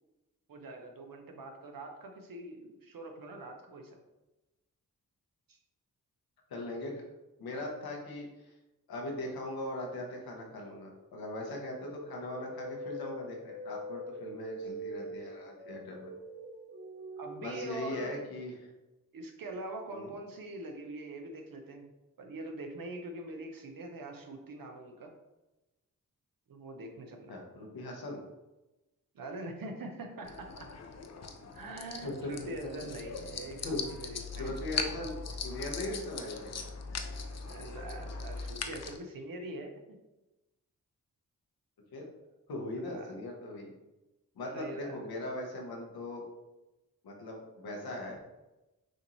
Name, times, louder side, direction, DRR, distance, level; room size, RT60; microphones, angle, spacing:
voice 1, 0.5-4.0 5.5-5.6 17.2-18.1 19.1-21.9 22.2-25.1 26.5-27.4 29.1-30.7 31.5-34.6 37.3-40.0 42.8-43.1 44.5-45.0, right 2 dB, 65° right, 3 dB, 1.0 m, -43 dB
voice 2, 6.5-6.9 7.4-8.5 8.9-16.1 17.4-18.7 19.9-20.1 27.3-28.2 32.0-32.3 33.6-33.8 34.4-36.5 41.9-42.0 42.5-43.7 44.4-46.2 47.0-48.2, left 1 dB, 85° left, 0 dB, 1.1 m, -39 dB
sound 1, 11.5-17.7, right 1 dB, 30° right, 0.8 m, -43 dB
sound 2, 30.2-39.0, left 4 dB, 45° left, 0.6 m, -40 dB
6.3 x 2.7 x 3.1 m, 1.0 s
supercardioid pair, 40°, 36 cm